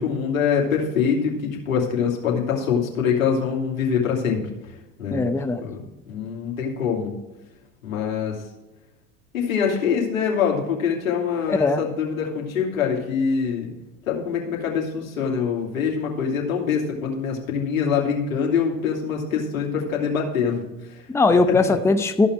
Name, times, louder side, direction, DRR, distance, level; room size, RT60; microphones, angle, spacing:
voice 1, 0.0-5.3 5.6-7.1 7.8-8.4 9.3-13.7 14.1-21.1 21.5-21.7, left 6 dB, 90° left, -2 dB, 3.0 m, -24 dB
voice 2, 5.1-5.6 11.5-11.8 21.1-22.3, left 3 dB, 5° left, 8 dB, 0.7 m, -19 dB
14.0 x 5.8 x 4.6 m, 0.98 s
hypercardioid pair, 90°, 40 cm